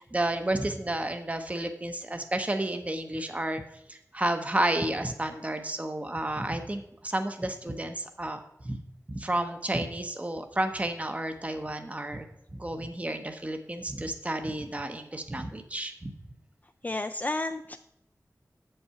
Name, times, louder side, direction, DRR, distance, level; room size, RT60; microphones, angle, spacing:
voice 1, 0.0-3.6 3.9-8.8 9.1-12.3 12.5-16.1, right 1 dB, 20° right, 7 dB, 0.7 m, -31 dB
voice 2, 16.8-17.8, left 2 dB, 30° left, 7 dB, 0.3 m, -31 dB
7.6 x 5.5 x 5.7 m, 0.77 s
wide cardioid pair, 75°, 6 cm